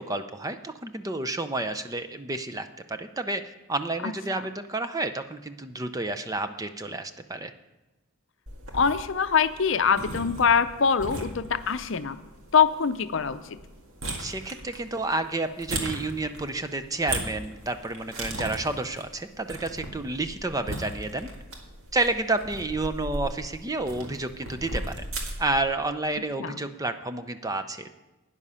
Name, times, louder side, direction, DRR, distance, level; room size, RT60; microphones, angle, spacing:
voice 1, 0.0-7.5 14.2-21.3 21.9-25.0 25.4-27.9, right 2 dB, 15° right, 9 dB, 0.4 m, -30 dB
sound 1, 8.5-25.6, right 1 dB, 70° right, 1.9 m, -38 dB
voice 2, 8.7-12.2 12.5-13.6 26.4-26.6, left 6 dB, 60° left, 11 dB, 0.6 m, -23 dB
12.5 x 9.7 x 5.6 m, 1.1 s
head